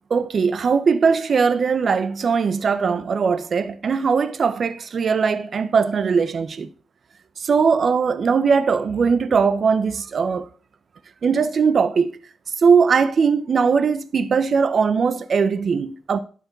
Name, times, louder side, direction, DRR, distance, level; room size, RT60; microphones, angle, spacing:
voice 1, 0.1-6.7 7.4-10.4 11.2-12.2 12.6-16.2, right 5 dB, 50° right, 0.8 m, -20 dB
11.5 x 4.9 x 5.3 m
cardioid pair, 100°, 0 cm